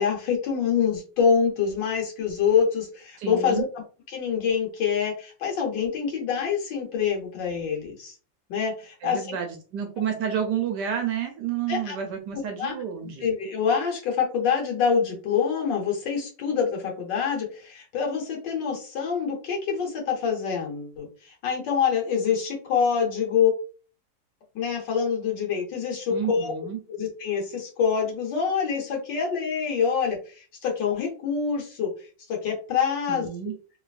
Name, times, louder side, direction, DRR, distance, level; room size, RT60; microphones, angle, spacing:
voice 1, 0.0-3.7 4.1-8.1 8.5-9.3 11.7-12.0 12.6-12.7 13.2-21.1 21.4-23.5 24.5-26.5 26.9-31.9 32.3-33.3, left 6 dB, 65° left, 0 dB, 1.6 m, -25 dB
voice 2, 3.2-3.7 9.0-13.3 26.1-26.8 33.1-33.6, right 8 dB, 70° right, 4 dB, 1.1 m, -30 dB
3.3 x 3.0 x 2.4 m, 0.37 s
omnidirectional pair, 2.2 m